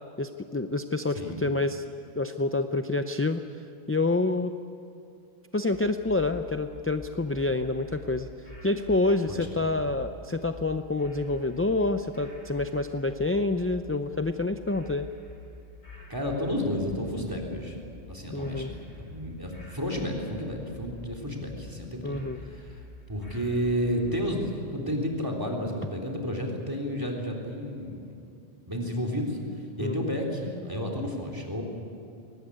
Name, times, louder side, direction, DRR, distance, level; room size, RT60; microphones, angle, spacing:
voice 1, 0.2-1.8 2.2-3.4 3.9-4.5 5.5-8.3 8.6-15.1 18.3-18.7 22.0-22.4 29.8-30.1, left 2 dB, 20° left, 8 dB, 0.4 m, -27 dB
sound 1, 5.7-24.4, left 1 dB, 80° left, 5.3 m, -47 dB
voice 2, 9.3-9.8 16.1-17.8 18.1-22.2 22.4-22.8 23.1-28.0 28.7-29.4 29.8-31.6, equal, 20° right, 1 dB, 3.6 m, -31 dB
21.5 x 18.5 x 9.9 m, 2.6 s
omnidirectional pair, 1.1 m